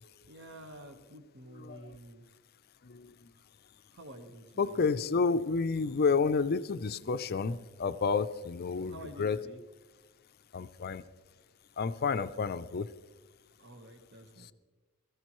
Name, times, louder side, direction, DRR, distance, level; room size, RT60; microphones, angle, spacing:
voice 1, 0.3-2.3 3.9-4.9 8.9-9.6 13.6-14.5, right 1 dB, 50° right, 7 dB, 1.2 m, -49 dB
voice 2, 1.5-2.0 2.8-3.3 4.6-9.4 10.5-11.0 11.8-12.9 14.4-14.5, left 4 dB, 45° left, 13 dB, 0.5 m, -30 dB
21.0 x 14.0 x 3.1 m, 1.3 s
head